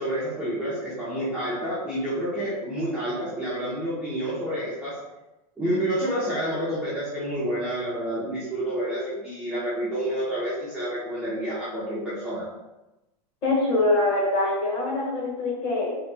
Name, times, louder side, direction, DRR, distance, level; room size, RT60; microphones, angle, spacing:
voice 1, 0.0-5.0 5.6-12.5, right 1 dB, 5° right, -12 dB, 0.6 m, -29 dB
voice 2, 13.4-16.0, left 2 dB, 25° left, -4 dB, 0.9 m, -24 dB
3.5 x 2.0 x 4.1 m, 0.98 s
supercardioid pair, 170°, 21 cm